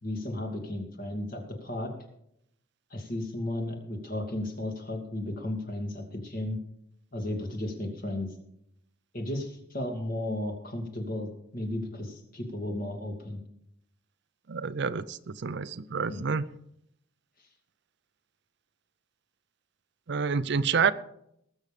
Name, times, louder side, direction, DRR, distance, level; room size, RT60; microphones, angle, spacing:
voice 1, 0.0-1.9 2.9-6.6 7.1-8.3 9.1-13.4 16.1-16.2, left 1 dB, 45° left, 2 dB, 2.5 m, -34 dB
voice 2, 14.5-16.5 20.1-20.9, right 5 dB, 60° right, 15 dB, 0.5 m, -28 dB
19.5 x 7.2 x 5.0 m, 0.75 s
head